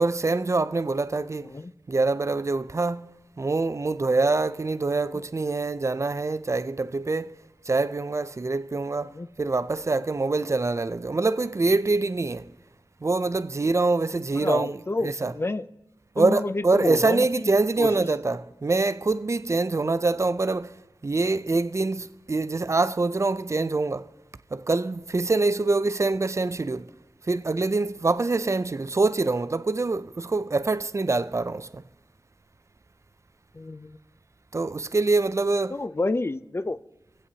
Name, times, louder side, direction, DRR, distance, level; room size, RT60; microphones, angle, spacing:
voice 1, 0.0-1.5 1.9-7.3 7.7-12.5 13.0-15.3 16.2-20.7 21.0-24.1 24.5-26.9 27.2-31.8 34.5-35.8, right 3 dB, 35° right, 0.4 m, -25 dB
voice 2, 14.3-15.7 16.2-17.3 17.8-17.9 33.5-34.0 35.7-36.8, left 2 dB, 30° left, 0.4 m, -29 dB
20.5 x 8.3 x 2.8 m
wide cardioid pair, 55°, 8 cm